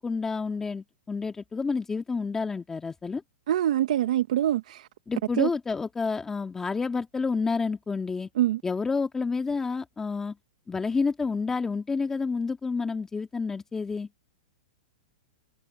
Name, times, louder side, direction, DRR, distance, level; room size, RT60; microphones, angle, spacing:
voice 1, 0.0-3.2 5.1-8.3 8.6-10.4 10.7-14.1, left 4 dB, 10° left, 2.0 m, -29 dB
voice 2, 3.5-4.9 5.4-5.5 8.4-8.6, right 12 dB, 70° right, 1.2 m, -24 dB
hypercardioid pair, 135°, 4 cm